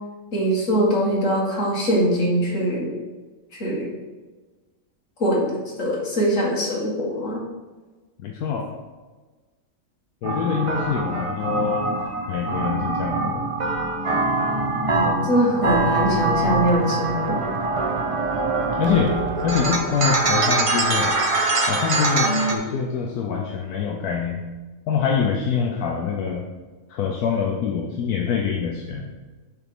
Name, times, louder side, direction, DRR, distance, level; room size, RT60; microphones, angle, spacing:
voice 1, 0.3-2.9 3.6-3.9 5.2-5.5 5.8-7.4 14.9-17.5, equal, 55° left, -4 dB, 2.1 m, -22 dB
voice 2, 8.2-8.8 10.2-11.8 12.3-13.5 18.8-19.1 19.4-21.1 21.7-24.4 24.9-26.4 26.9-29.0, left 6 dB, 80° left, 0 dB, 1.2 m, -25 dB
sound 1, 10.2-22.6, right 2 dB, 35° right, 0.5 m, -23 dB
7.1 x 3.5 x 5.9 m, 1.3 s
omnidirectional pair, 1.6 m